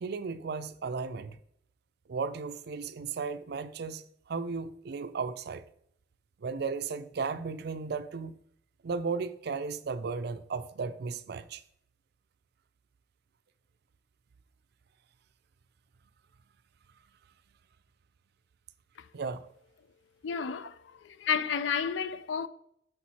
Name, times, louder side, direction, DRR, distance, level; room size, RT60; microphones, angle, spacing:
voice 1, 0.0-1.4 2.1-5.6 6.4-8.3 8.8-11.6 19.1-19.5, right 4 dB, 60° right, 0.4 m, -35 dB
voice 2, 20.2-22.5, left 6 dB, 75° left, 0.4 m, -31 dB
6.5 x 4.5 x 4.2 m
head